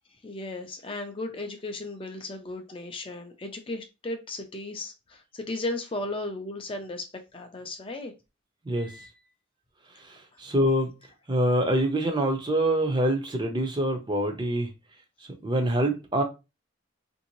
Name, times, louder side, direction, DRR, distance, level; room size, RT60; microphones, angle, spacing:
voice 1, 0.1-8.1, left 2 dB, 25° left, 0.4 m, -35 dB
voice 2, 8.6-9.1 10.0-10.9 11.3-14.7 15.4-16.2, right 1 dB, 20° right, 0.5 m, -25 dB
3.5 x 2.6 x 2.9 m
head